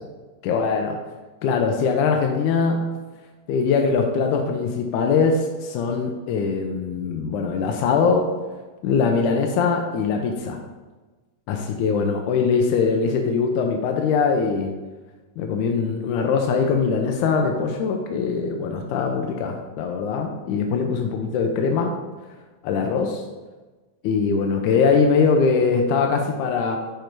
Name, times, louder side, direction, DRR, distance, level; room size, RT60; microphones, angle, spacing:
voice 1, 0.4-1.0 1.4-2.9 3.5-8.3 8.8-10.6 11.5-14.7 15.4-21.9 22.6-23.2 24.0-26.8, left 5 dB, 80° left, 3 dB, 1.9 m, -22 dB
5.9 x 5.1 x 4.5 m, 1.3 s
omnidirectional pair, 3.9 m